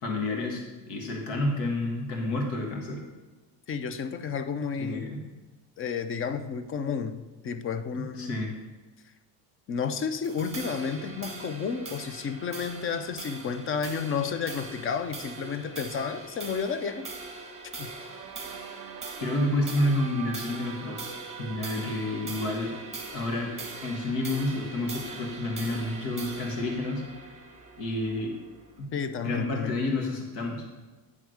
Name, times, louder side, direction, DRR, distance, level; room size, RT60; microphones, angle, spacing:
voice 1, 0.0-3.0 4.8-5.2 7.9-8.6 19.2-22.8 23.1-23.5 23.8-27.0 27.8-28.4 28.8-28.9 29.2-30.6, left 1 dB, 75° left, 2 dB, 1.6 m, -30 dB
voice 2, 3.7-5.0 5.8-8.3 9.7-17.1 17.8-17.9 28.9-29.7, left 6 dB, 30° left, 10 dB, 0.5 m, -31 dB
sound 1, 10.2-28.8, right 3 dB, 15° right, 1.4 m, -42 dB
sound 2, 17.8-24.2, right 11 dB, 45° right, 0.6 m, -46 dB
9.2 x 3.6 x 6.3 m, 1.2 s
cardioid pair, 120°, 45 cm